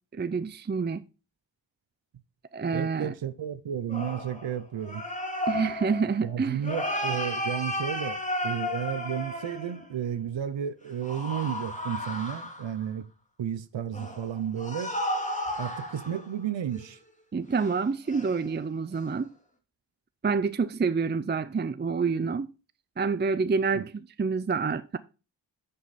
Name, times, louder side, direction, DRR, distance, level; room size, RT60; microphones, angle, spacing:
voice 1, 0.1-1.1 2.5-3.1 5.5-6.6 17.3-19.3 20.2-22.5 23.0-23.9 24.2-25.0, right 5 dB, 25° right, 0.5 m, -27 dB
voice 2, 2.7-5.0 6.2-13.1 13.4-15.0 15.6-17.0 23.7-23.9, right 9 dB, 80° right, 0.8 m, -32 dB
sound 1, 3.9-10.0 11.0-12.8 13.9-16.3 16.7-16.8 17.5-17.8 18.1-18.5 18.9-19.1, left 1 dB, 15° left, 2.2 m, -33 dB
9.9 x 5.6 x 4.2 m
cardioid pair, 55°, 44 cm